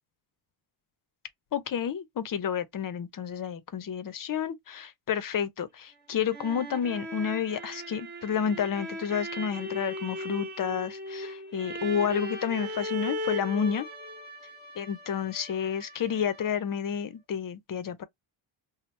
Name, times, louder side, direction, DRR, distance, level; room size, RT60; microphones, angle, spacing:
voice 1, 1.5-13.9 14.8-18.0, left 8 dB, 45° left, 0.6 m, -30 dB
sound 1, 5.9-16.8, equal, 20° right, 1.3 m, -38 dB
2.8 x 2.1 x 3.1 m
cardioid pair, 85°, 49 cm